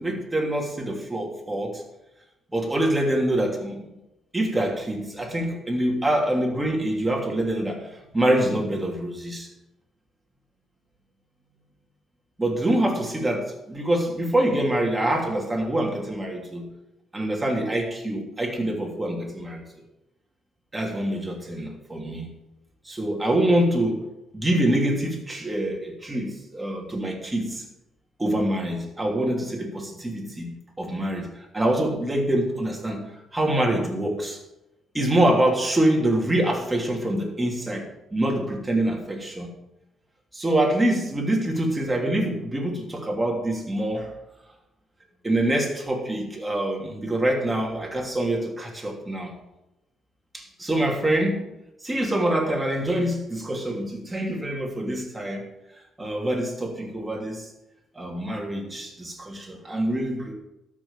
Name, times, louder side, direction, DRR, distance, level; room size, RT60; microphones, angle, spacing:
voice 1, 0.0-1.8 2.5-3.8 4.3-9.5 12.4-16.7 17.1-19.6 20.7-22.3 22.8-24.0 24.3-27.6 28.2-33.0 33.3-34.4 34.9-37.9 38.1-39.5 40.3-44.1 45.2-49.3 50.3-51.4 51.8-55.5 56.0-57.5 57.9-60.3, right 1 dB, 15° right, 0 dB, 3.1 m, -25 dB
13.0 x 6.1 x 7.3 m, 0.93 s
cardioid pair, 90°, 0 cm